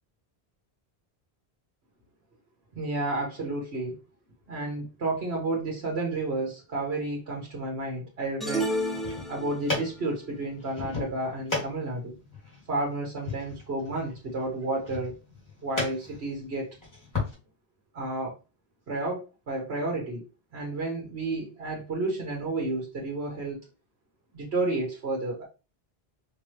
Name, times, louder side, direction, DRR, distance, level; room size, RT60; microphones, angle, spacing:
voice 1, 2.7-4.0 4.5-8.7 9.3-12.1 12.7-15.1 15.6-16.7 17.9-18.3 18.9-20.2 20.5-23.6 24.3-25.4, right 2 dB, 80° right, -1 dB, 1.5 m, -31 dB
sound 1, 8.4-9.9, right 1 dB, ahead, 0.9 m, -31 dB
sound 2, 8.8-17.3, left 3 dB, 15° left, 2.4 m, -36 dB
5.3 x 3.0 x 3.0 m, 0.29 s
omnidirectional pair, 1.1 m